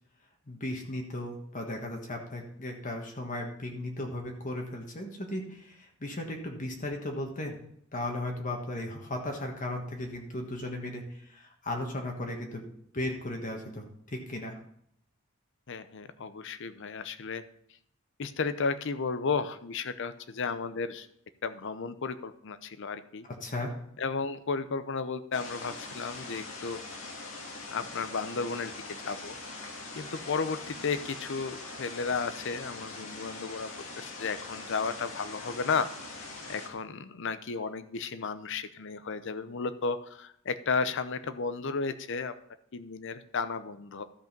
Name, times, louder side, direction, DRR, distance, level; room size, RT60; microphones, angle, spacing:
voice 1, 0.5-7.6 7.9-12.6 12.9-14.6 23.4-23.7, left 1 dB, 40° left, 2 dB, 1.5 m, -36 dB
voice 2, 15.7-17.4 18.2-21.1 21.4-23.3 24.0-26.8 27.7-28.7 29.0-29.3 30.0-35.9 36.5-42.3 42.7-44.0, left 4 dB, 60° left, 12 dB, 0.7 m, -33 dB
sound 1, 25.3-36.7, left 3 dB, 80° left, 2.0 m, -42 dB
13.0 x 5.4 x 5.3 m, 0.71 s
head